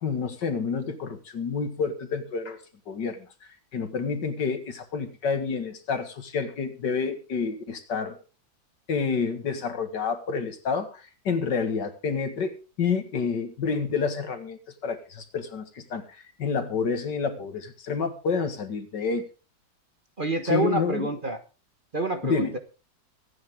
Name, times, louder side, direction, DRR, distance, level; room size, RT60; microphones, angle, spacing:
voice 1, 0.0-2.6 2.9-3.3 3.7-8.2 8.9-12.5 12.8-16.0 16.4-19.2 20.4-21.1 22.2-22.5, left 5 dB, 70° left, 9 dB, 2.4 m, -29 dB
voice 2, 20.2-21.4 21.9-22.6, right 2 dB, 30° right, 7 dB, 1.2 m, -27 dB
23.5 x 9.4 x 3.6 m, 0.33 s
omnidirectional pair, 1.9 m